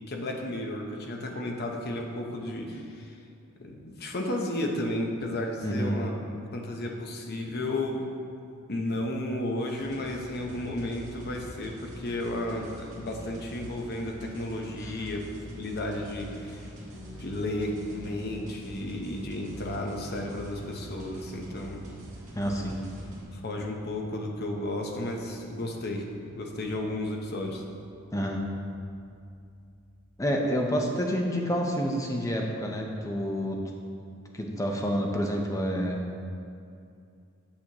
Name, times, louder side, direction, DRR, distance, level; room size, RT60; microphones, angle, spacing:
voice 1, 0.1-3.1 3.6-6.1 6.5-8.1 8.7-15.2 15.5-16.6 17.1-21.8 23.3-26.0 26.3-27.6, left 1 dB, 50° left, 1 dB, 0.8 m, -33 dB
voice 2, 5.6-6.0 14.8-14.9 22.3-22.8 28.1-28.4 30.2-33.6 34.3-36.0, equal, 15° left, 1 dB, 0.6 m, -28 dB
sound 1, 9.7-23.2, equal, 35° right, 1.6 m, -45 dB
sound 2, 26.7-28.8, left 3 dB, 75° left, 1.3 m, -52 dB
8.6 x 6.3 x 2.9 m, 2.5 s
head